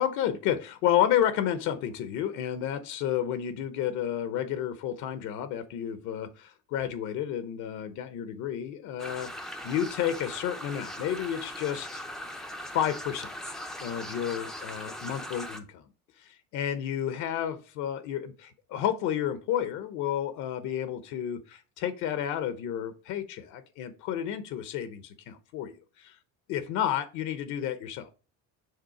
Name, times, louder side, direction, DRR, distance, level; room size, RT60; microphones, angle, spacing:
voice 1, 0.0-12.0 12.7-13.5 13.8-15.8 16.2-26.2 26.5-28.1, left 10 dB, 55° left, 10 dB, 0.8 m, -31 dB
sound 1, 9.0-15.6, equal, ahead, 0.5 m, -40 dB
6.7 x 3.6 x 4.8 m, 0.33 s
cardioid pair, 155°, 34 cm